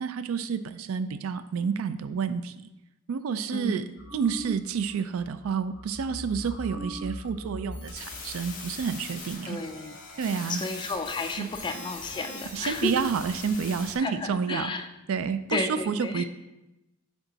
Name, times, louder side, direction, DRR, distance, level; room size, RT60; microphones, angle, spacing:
voice 1, 0.0-2.7 3.1-3.8 4.1-9.6 10.2-10.6 11.4-11.5 12.5-14.7 15.1-16.2, right 6 dB, 80° right, 13 dB, 0.4 m, -29 dB
voice 2, 3.5-3.8 9.4-9.9 10.5-13.0 14.0-14.9 15.5-16.2, left 2 dB, 20° left, 7 dB, 0.4 m, -32 dB
sound 1, 4.0-4.9 5.2-5.5 5.7-8.9, equal, 55° left, 0.9 m, -40 dB
sound 2, 7.7-14.0, left 3 dB, 40° left, 1.4 m, -41 dB
8.0 x 3.6 x 3.9 m, 0.97 s
head